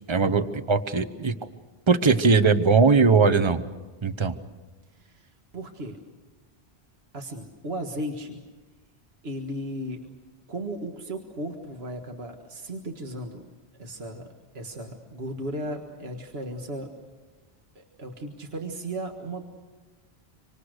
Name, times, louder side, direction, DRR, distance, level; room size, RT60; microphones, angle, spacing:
voice 1, 0.1-1.3 1.9-3.6 4.0-4.4, right 4 dB, 30° right, 11 dB, 1.0 m, -20 dB
voice 2, 5.0-6.0 7.1-8.4 9.2-10.0 10.5-13.5 13.8-14.3 14.5-16.9 17.8-19.4, right 1 dB, 75° right, 3 dB, 2.0 m, -35 dB
26.0 x 25.5 x 6.6 m, 1.3 s
omnidirectional pair, 1.1 m